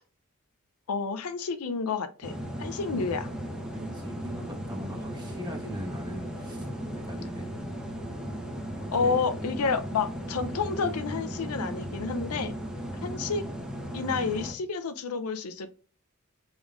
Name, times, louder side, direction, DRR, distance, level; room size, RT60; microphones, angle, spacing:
voice 1, 0.9-2.3 2.6-3.3 8.9-12.5 13.0-13.4 13.9-15.7, left 5 dB, 80° left, 0.5 m, -30 dB
Quiet Ambience in a Small Church Sanctuary, 2.2-14.5, equal, 5° right, 0.8 m, -36 dB
voice 2, 3.7-7.5 8.8-9.3 12.9-13.2, equal, 20° right, 1.2 m, -41 dB
sound 1, 6.0-13.3, left 3 dB, 30° left, 1.0 m, -52 dB
5.2 x 3.7 x 2.4 m
head